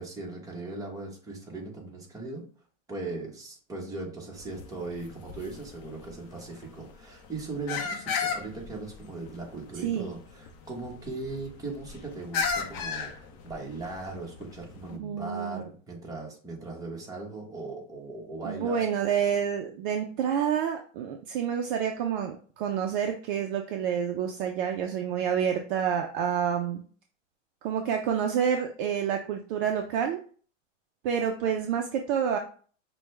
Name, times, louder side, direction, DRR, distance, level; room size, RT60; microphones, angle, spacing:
voice 1, 0.0-2.4 2.9-18.9, right 3 dB, 10° right, -2 dB, 1.2 m, -39 dB
sound 1, 4.3-14.9, left 5 dB, 40° left, 0.7 m, -36 dB
voice 2, 14.9-15.6 18.4-26.8 27.6-30.2 31.0-32.4, right 8 dB, 45° right, 4 dB, 0.5 m, -28 dB
5.8 x 2.3 x 3.2 m, 0.44 s
hypercardioid pair, 125°, 38 cm